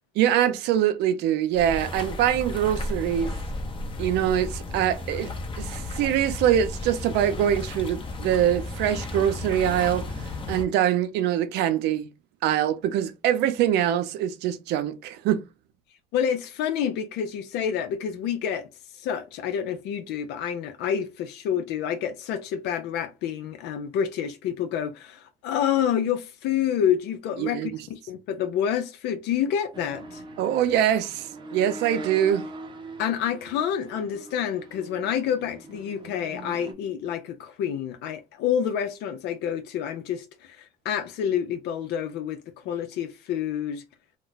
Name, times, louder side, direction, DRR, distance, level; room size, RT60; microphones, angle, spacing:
voice 1, 0.2-3.3 4.0-5.3 5.6-10.1 10.5-12.1 12.4-15.4 27.4-27.7 30.4-32.5, right 10 dB, 85° right, 0.5 m, -24 dB
sound 1, 1.5-10.6, left 2 dB, 30° left, 0.8 m, -34 dB
voice 2, 16.1-30.2 33.0-42.4 42.6-43.8, left 9 dB, 85° left, 0.5 m, -28 dB
sound 2, 29.7-36.7, right 2 dB, 30° right, 0.6 m, -42 dB
2.3 x 2.2 x 3.8 m
cardioid pair, 110°, 17 cm